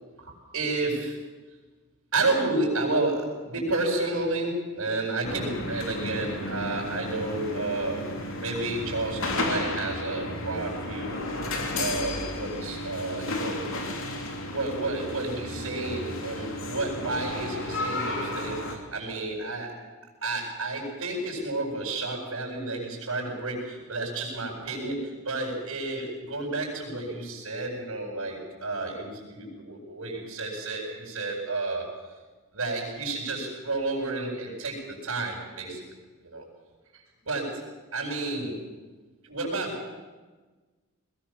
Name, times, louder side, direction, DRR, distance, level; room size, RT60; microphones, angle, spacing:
voice 1, 0.2-1.2 2.1-8.0 8.4-11.3 11.8-13.6 14.4-19.7 20.2-31.9 32.5-35.8 36.2-36.4 37.3-37.5 37.9-38.6 39.2-39.9, right 2 dB, 70° right, -6 dB, 7.5 m, -31 dB
sound 1, 5.2-18.8, left 2 dB, 65° left, 3.4 m, -33 dB
21.5 x 20.5 x 7.5 m, 1.3 s
head